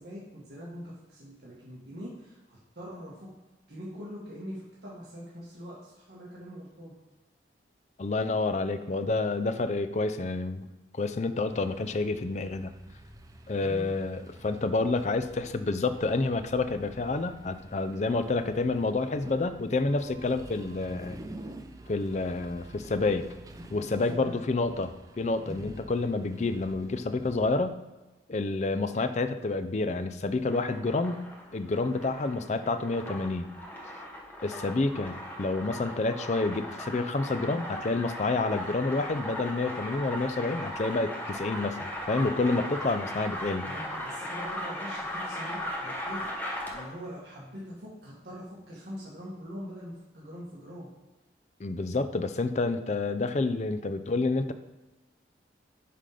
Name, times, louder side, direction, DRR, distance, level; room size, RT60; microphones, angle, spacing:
voice 1, 0.0-3.1 3.7-6.9 13.6-14.0 23.7-24.6 25.4-25.7 42.3-43.1 43.6-46.2 46.7-50.9, equal, 65° right, -6 dB, 1.7 m, -43 dB
voice 2, 8.0-12.7 13.5-21.2 21.9-23.3 23.7-27.8 28.3-31.2 31.5-33.5 34.4-43.7 51.6-54.5, left 3 dB, 40° left, 9 dB, 0.4 m, -29 dB
sound 1, 11.5-27.5, right 1 dB, 20° right, 0.5 m, -49 dB
sound 2, 30.3-47.0, equal, 10° left, 0.9 m, -38 dB
5.7 x 5.1 x 5.0 m, 1.2 s
head